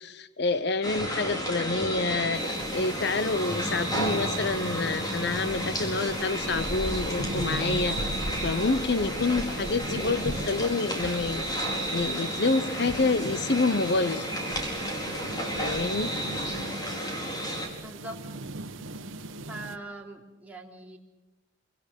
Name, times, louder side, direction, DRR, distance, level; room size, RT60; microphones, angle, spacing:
voice 1, 0.0-8.0 8.4-11.5 11.9-14.3 15.6-16.1, left 3 dB, 55° left, 14 dB, 0.8 m, -28 dB
sound 1, 0.8-17.7, equal, 20° left, 4.6 m, -32 dB
sound 2, 2.3-19.8, right 2 dB, 80° right, 1.3 m, -40 dB
voice 2, 17.8-18.2 19.5-21.0, right 2 dB, 5° right, -1 dB, 3.5 m, -42 dB
27.0 x 25.0 x 6.8 m, 1.1 s
head